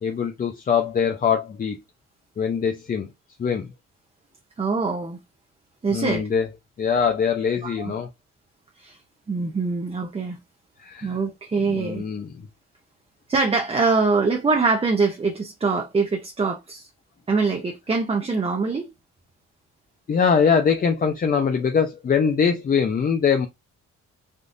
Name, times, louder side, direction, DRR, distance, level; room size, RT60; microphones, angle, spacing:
voice 1, 0.0-1.8 2.4-3.1 3.4-3.7 5.9-6.5 6.8-8.1 10.8-11.2 11.7-12.3 20.1-23.5, left 6 dB, 30° left, 0.5 m, -22 dB
voice 2, 4.6-5.2 5.8-6.3 7.6-7.9 8.8-9.0 9.3-10.4 11.0-12.0 13.3-16.9 17.3-18.9, right 4 dB, 20° right, 0.5 m, -23 dB
3.5 x 2.4 x 2.6 m
cardioid pair, 90°, 30 cm